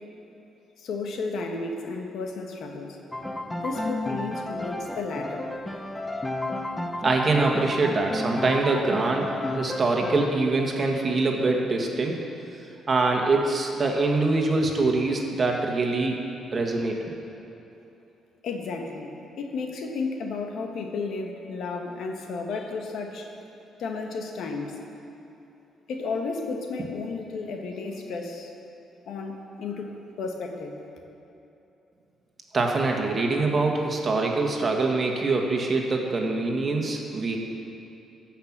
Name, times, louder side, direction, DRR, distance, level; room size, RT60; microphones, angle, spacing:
voice 1, 0.8-3.0 3.5-5.4 18.4-19.1 19.4-23.3 23.8-24.8 25.9-28.5 29.1-30.8, left 4 dB, 70° left, 3 dB, 1.3 m, -33 dB
Piano, 3.1-10.4, left 1 dB, 10° left, 0.8 m, -32 dB
voice 2, 7.0-12.2 12.9-16.2 16.5-17.0 32.5-37.4, right 3 dB, 35° right, 1 dB, 1.7 m, -24 dB
14.5 x 5.8 x 7.4 m, 2.9 s
cardioid pair, 90°, 0 cm